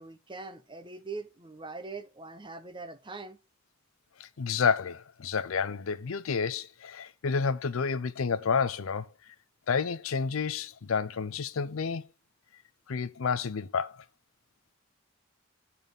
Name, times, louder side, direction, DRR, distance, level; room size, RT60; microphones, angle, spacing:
voice 1, 0.0-3.4, right 3 dB, 25° right, 0.9 m, -42 dB
voice 2, 4.2-9.3 9.7-12.1 12.9-14.0, left 5 dB, 80° left, 0.6 m, -30 dB
9.1 x 4.3 x 5.2 m
head